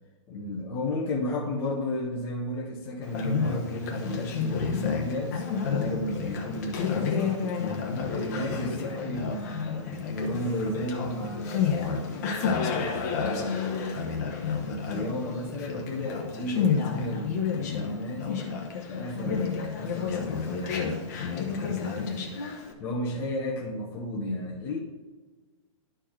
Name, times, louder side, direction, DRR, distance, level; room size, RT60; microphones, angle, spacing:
voice 1, 0.3-7.6 8.1-12.6 13.1-18.5 18.9-22.4 22.8-24.8, left 1 dB, 15° left, -4 dB, 0.7 m, -33 dB
Conversation, 3.0-22.7, left 6 dB, 30° left, 1.0 m, -30 dB
11.5 x 4.6 x 4.5 m, 1.3 s
hypercardioid pair, 175°, 17 cm